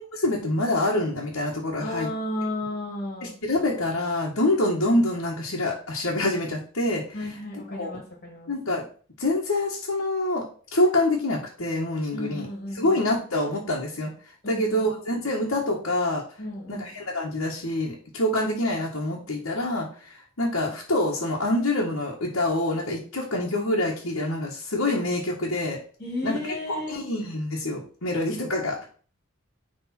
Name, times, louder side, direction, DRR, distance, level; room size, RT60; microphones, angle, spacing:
voice 1, 0.0-2.1 3.2-8.0 8.5-8.9 9.2-10.4 10.7-12.5 12.7-14.1 14.5-16.2 16.7-25.8 26.2-26.4 26.7-28.9, left 1 dB, 80° left, -4 dB, 1.5 m, -26 dB
voice 2, 1.8-3.3 7.1-8.5 12.1-13.0 14.4-14.8 16.4-16.9 26.0-27.0, left 1 dB, 40° left, -1 dB, 2.3 m, -33 dB
9.8 x 3.6 x 4.4 m, 0.43 s
head